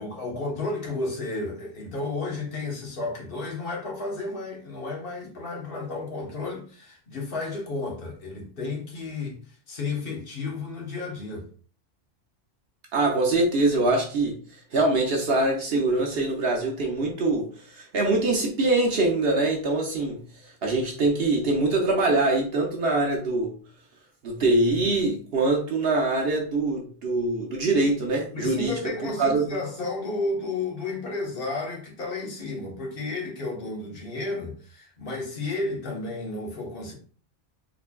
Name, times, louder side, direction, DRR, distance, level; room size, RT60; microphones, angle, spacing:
voice 1, 0.0-9.4 9.7-11.5 28.3-36.9, left 3 dB, 50° left, 1.2 m, -32 dB
voice 2, 12.9-14.4 14.7-17.5 17.8-20.2 20.6-23.5 24.2-29.6, right 2 dB, 60° right, 0.9 m, -23 dB
3.9 x 3.2 x 2.2 m
omnidirectional pair, 1.2 m